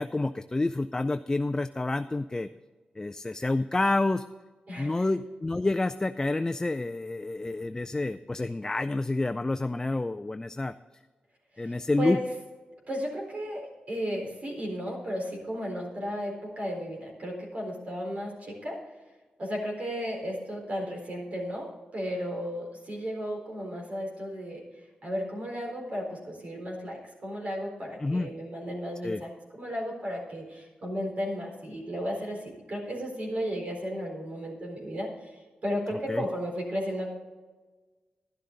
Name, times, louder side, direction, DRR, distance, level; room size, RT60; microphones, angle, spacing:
voice 1, 0.0-2.5 3.0-4.2 4.8-10.7 11.6-12.2 28.0-28.3 29.0-29.2 36.1-36.2, left 2 dB, 20° left, 10 dB, 0.4 m, -28 dB
voice 2, 4.7-5.0 11.6-12.2 12.9-18.8 19.4-24.6 25.0-35.3 35.6-37.1, equal, 50° right, 0 dB, 4.0 m, -34 dB
12.0 x 11.5 x 3.9 m, 1.3 s
wide cardioid pair, 95°, 3 cm